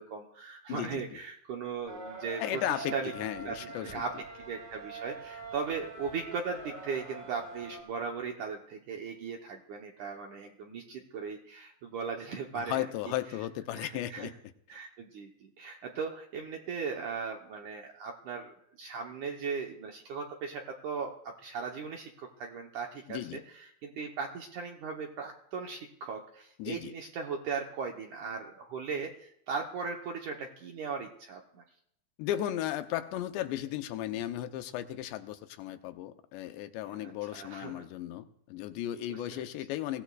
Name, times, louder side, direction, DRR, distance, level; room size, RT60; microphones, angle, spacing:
voice 1, 0.0-2.6 2.9-3.1 3.5-4.1 4.4-12.9 13.7-14.3 14.7-31.6 36.9-37.9 39.1-39.2, right 5 dB, 75° right, 2 dB, 1.9 m, -38 dB
voice 2, 0.7-1.2 2.4-3.9 12.5-14.3 23.1-23.4 26.6-26.9 32.2-40.0, left 12 dB, 90° left, 8 dB, 3.0 m, -35 dB
sound 1, 1.9-7.8, right 4 dB, 30° right, 5.9 m, -44 dB
23.5 x 17.0 x 2.4 m, 0.70 s
omnidirectional pair, 4.9 m